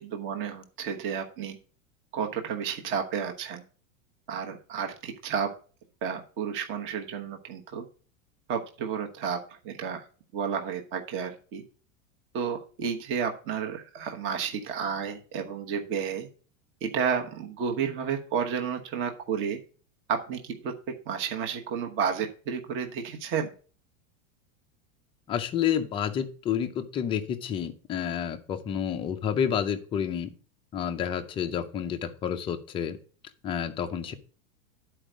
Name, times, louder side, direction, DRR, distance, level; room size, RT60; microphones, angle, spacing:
voice 1, 0.0-1.6 2.1-3.6 4.3-5.5 6.0-7.9 8.5-9.4 9.6-10.1 10.3-11.6 12.3-16.3 16.8-19.6 20.1-20.7 21.1-23.5, right 7 dB, 30° right, 4 dB, 1.1 m, -31 dB
voice 2, 25.3-30.3 30.7-33.0 33.4-34.1, left 8 dB, 15° left, 6 dB, 0.4 m, -29 dB
10.5 x 4.6 x 5.0 m, 0.40 s
supercardioid pair, 155°, 41 cm